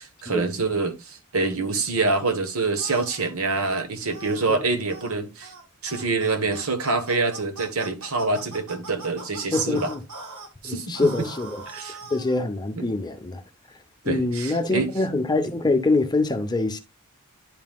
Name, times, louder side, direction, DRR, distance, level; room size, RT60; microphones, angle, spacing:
voice 1, 0.0-5.5 5.8-9.9 10.6-11.3 11.7-12.0 12.8-12.9 14.0-14.9, right 3 dB, 65° right, 1.2 m, -26 dB
sound 1, 2.8-3.3 4.1-4.5 4.9-5.1 5.4-5.6 5.9-10.5 10.9-12.4, right 2 dB, 90° right, 2.5 m, -41 dB
voice 2, 9.5-10.0 10.6-11.6 12.1-13.4 14.1-16.8, left 2 dB, 20° left, 0.7 m, -24 dB
10.5 x 5.6 x 2.3 m
head